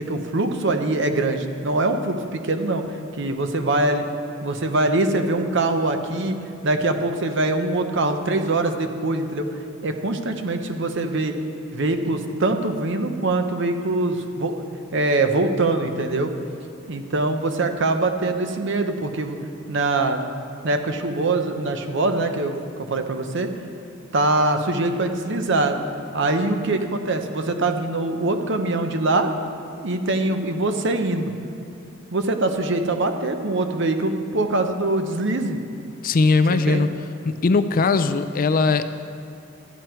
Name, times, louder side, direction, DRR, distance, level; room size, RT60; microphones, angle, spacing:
voice 1, 0.0-2.8 3.1-4.0 4.4-6.4 6.6-9.4 9.8-11.3 11.7-14.6 14.9-16.3 16.9-19.4 19.7-20.2 20.6-22.6 22.9-23.5 24.1-25.8 26.1-29.3 29.8-31.3 32.1-35.6 36.5-36.9, right 2 dB, 60° right, 6 dB, 0.9 m, -23 dB
voice 2, 36.0-36.9 37.2-38.9, left 4 dB, 45° left, 11 dB, 0.4 m, -19 dB
13.5 x 9.3 x 4.5 m, 2.5 s
head